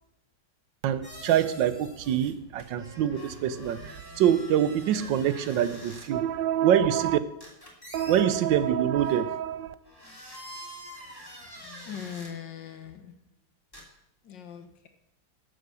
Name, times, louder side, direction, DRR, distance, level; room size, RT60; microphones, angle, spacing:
voice 1, 0.8-7.2 7.9-9.7, right 10 dB, 85° right, 1.4 m, -25 dB
sound 1, 1.0-2.3 2.6-6.1 7.4-8.2 9.0-9.2 9.8-12.3 13.7-13.8, equal, 10° left, 2.7 m, -45 dB
voice 2, 11.8-13.1 14.2-14.9, left 8 dB, 85° left, 1.9 m, -40 dB
11.5 x 7.9 x 6.8 m
omnidirectional pair, 2.0 m